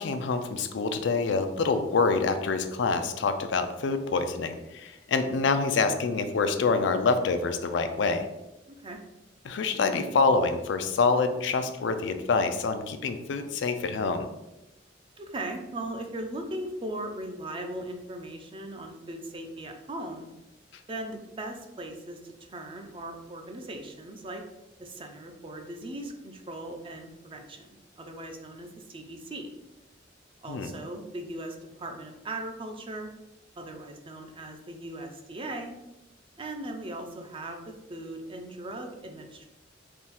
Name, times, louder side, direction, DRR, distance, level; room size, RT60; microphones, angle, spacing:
voice 1, 0.0-8.3 9.4-14.3 30.5-30.7, left 4 dB, 65° left, 8 dB, 0.4 m, -26 dB
voice 2, 8.7-9.0 15.2-20.3 20.9-24.4 24.8-29.5 30.4-33.1 33.6-35.7 36.4-39.5, right 1 dB, 30° right, 4 dB, 0.5 m, -39 dB
3.6 x 2.3 x 4.2 m, 0.96 s
head